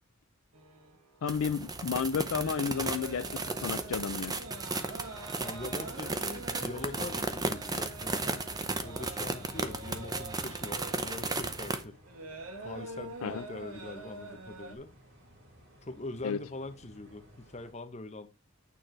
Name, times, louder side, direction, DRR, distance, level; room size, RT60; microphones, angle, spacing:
sound 1, 0.5-14.8, right 2 dB, 80° right, 1.6 m, -46 dB
voice 1, 1.2-3.3 3.6-4.3 13.2-13.4 16.2-16.4, left 6 dB, 70° left, 0.4 m, -32 dB
sound 2, 1.3-11.8, right 3 dB, 15° right, 0.7 m, -35 dB
voice 2, 5.4-8.2 8.8-11.9 12.6-14.9 15.8-18.3, left 2 dB, 30° left, 0.9 m, -43 dB
sound 3, 8.6-17.7, equal, 60° right, 3.2 m, -58 dB
9.1 x 4.5 x 4.5 m
head